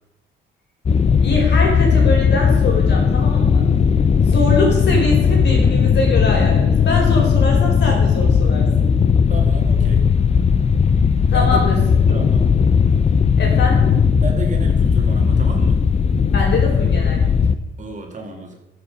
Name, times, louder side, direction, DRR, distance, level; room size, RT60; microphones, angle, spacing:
sound 1, 0.9-17.6, left 6 dB, 35° left, 0.7 m, -16 dB
voice 1, 1.2-3.6 4.2-8.7 11.3-11.8 13.4-13.8 16.3-17.2, left 2 dB, 60° left, -1 dB, 5.0 m, -23 dB
voice 2, 9.3-10.0 11.3-12.5 14.2-15.8 17.8-18.6, right 2 dB, 40° right, 2 dB, 2.4 m, -31 dB
13.5 x 7.7 x 5.4 m, 0.95 s
cardioid pair, 90°, 20 cm